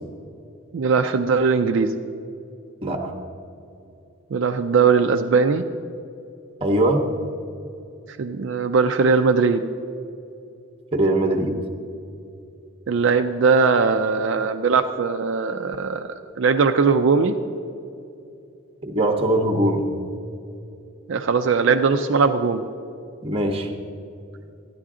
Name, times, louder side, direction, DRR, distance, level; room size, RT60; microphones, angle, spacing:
voice 1, 0.7-1.9 4.3-5.6 8.1-9.6 12.9-16.1 16.4-17.4 21.1-22.7, right 5 dB, 60° right, 6 dB, 0.4 m, -20 dB
voice 2, 2.8-3.1 6.6-7.0 10.9-11.6 18.8-19.9 23.2-23.7, right 1 dB, 25° right, 4 dB, 0.7 m, -21 dB
12.5 x 9.9 x 3.7 m, 2.7 s
head